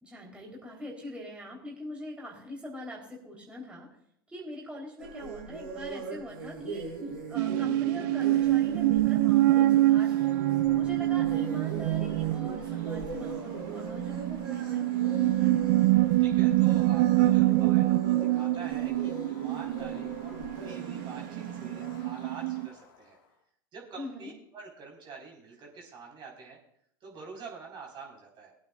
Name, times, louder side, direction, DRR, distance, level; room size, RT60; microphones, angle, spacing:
voice 1, 0.0-4.0 4.3-6.9 7.3-10.4 10.7-15.6 24.0-24.3, left 1 dB, 10° right, -3 dB, 3.7 m, -42 dB
sound 1, 5.0-22.1, right 3 dB, 90° right, 3.9 m, -42 dB
sound 2, 7.4-22.7, right 16 dB, 60° right, 0.5 m, -26 dB
sound 3, 8.6-23.2, right 1 dB, 75° left, 1.7 m, -48 dB
voice 2, 16.2-23.2 23.7-26.6 27.0-28.6, right 5 dB, 40° right, -1 dB, 4.4 m, -46 dB
22.0 x 8.7 x 2.4 m, 0.69 s
hypercardioid pair, 85°, 12 cm